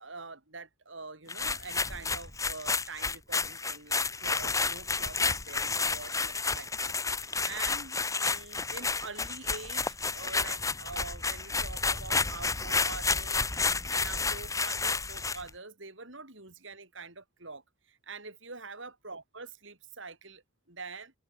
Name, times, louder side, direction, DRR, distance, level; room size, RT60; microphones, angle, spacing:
voice 1, 0.0-13.5 13.9-21.1, right 4 dB, 65° right, 6.4 m, -45 dB
sound 1, 1.3-15.5, left 4 dB, 15° left, 1.6 m, -31 dB
head